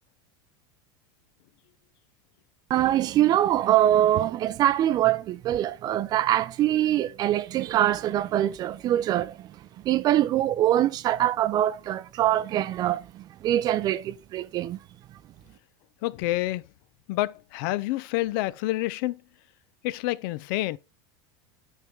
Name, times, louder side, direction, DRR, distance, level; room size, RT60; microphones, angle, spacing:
voice 1, 2.7-9.5 9.8-14.8, right 12 dB, 35° right, 0.4 m, -24 dB
voice 2, 16.0-16.6 17.1-19.2 19.8-20.8, left 17 dB, 60° left, 0.4 m, -28 dB
9.0 x 3.6 x 4.5 m
supercardioid pair, 140°, 12 cm